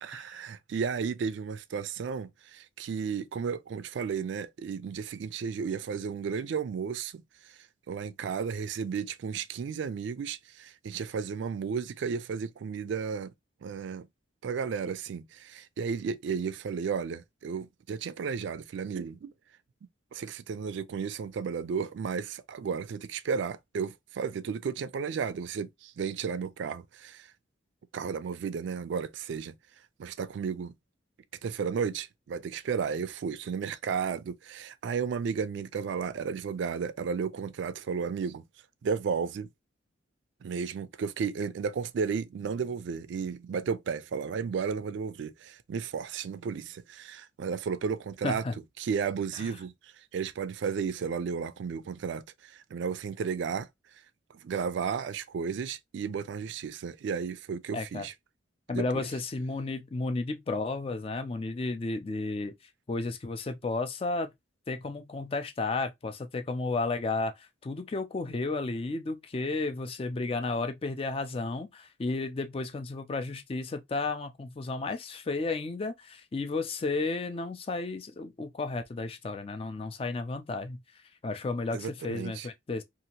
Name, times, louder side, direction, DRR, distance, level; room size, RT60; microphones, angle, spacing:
voice 1, 0.0-7.2 7.9-13.3 13.6-14.1 14.4-19.3 20.1-27.3 27.9-29.5 30.0-30.7 31.4-38.4 38.8-39.5 40.4-48.4 48.8-53.7 54.4-58.1 58.7-59.1 81.7-82.5, right 6 dB, 70° right, 0.3 m, -33 dB
voice 2, 48.2-48.6 49.4-49.5 57.7-58.1 58.7-62.5 62.9-64.3 64.7-80.8 81.2-82.8, left 3 dB, 30° left, 0.3 m, -33 dB
2.7 x 2.5 x 2.7 m
head